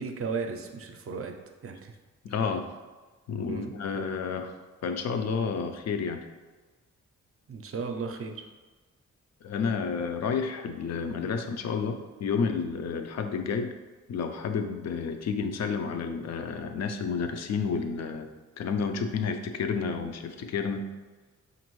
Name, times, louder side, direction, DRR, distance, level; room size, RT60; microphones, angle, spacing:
voice 1, 0.0-1.3 1.6-1.9 3.5-3.7 7.5-8.5, right 4 dB, 50° right, 4 dB, 0.5 m, -35 dB
voice 2, 2.2-2.7 3.3-4.6 4.8-6.3 9.4-13.7 14.1-18.3 18.6-20.9, left 5 dB, 60° left, 6 dB, 0.5 m, -30 dB
5.1 x 2.6 x 3.0 m, 1.3 s
cardioid pair, 95°, 30 cm